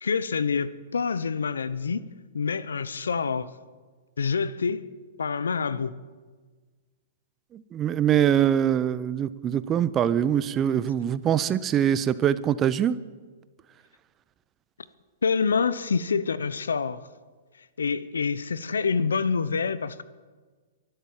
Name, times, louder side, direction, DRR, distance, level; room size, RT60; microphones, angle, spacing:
voice 1, 0.0-2.0 2.3-3.5 4.2-4.9 5.2-6.0 15.2-17.0 17.8-20.0, left 5 dB, 85° left, 0.8 m, -26 dB
voice 2, 7.5-13.0, right 9 dB, 25° right, 0.7 m, -23 dB
23.5 x 8.1 x 7.5 m
hypercardioid pair, 120°, 0 cm